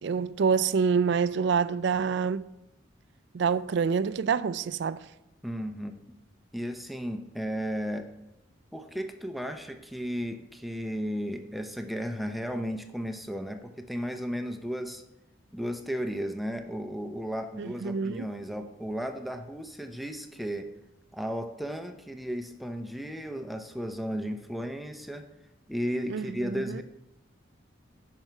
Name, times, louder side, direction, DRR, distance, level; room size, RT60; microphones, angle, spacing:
voice 1, 0.0-2.5 3.3-5.0 17.6-18.3 26.1-26.8, right 6 dB, 70° right, 0.4 m, -27 dB
voice 2, 5.4-6.2 6.5-8.1 8.7-15.0 15.5-20.7 21.1-25.3 25.7-26.8, equal, ahead, 0.6 m, -34 dB
11.0 x 6.0 x 4.5 m
head